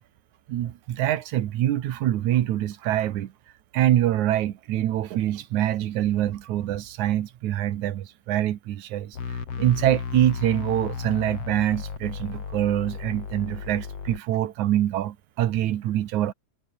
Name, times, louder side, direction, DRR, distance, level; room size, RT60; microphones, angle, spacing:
voice 1, 0.5-3.3 3.7-9.2 9.6-16.3, right 12 dB, 75° right, 2.6 m, -25 dB
sound 1, 9.1-14.2, left 6 dB, 50° left, 4.0 m, -34 dB
omnidirectional pair, 3.5 m